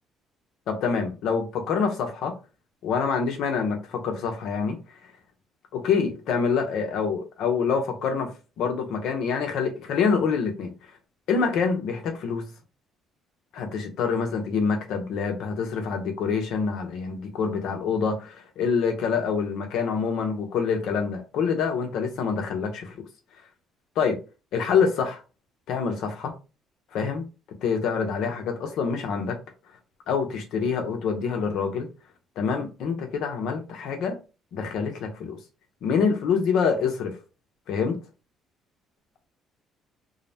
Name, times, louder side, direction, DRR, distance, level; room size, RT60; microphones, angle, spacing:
voice 1, 0.7-2.4 2.8-4.8 5.7-8.3 8.6-10.7 11.3-12.5 13.5-23.0 24.0-24.2 24.5-25.2 25.7-26.3 26.9-27.2 27.6-29.4 30.1-31.9 32.4-34.2 34.5-35.4 35.8-37.1 37.7-37.9, left 5 dB, 75° left, 0.6 m, -26 dB
2.6 x 2.0 x 2.7 m
supercardioid pair, 80°, 0 cm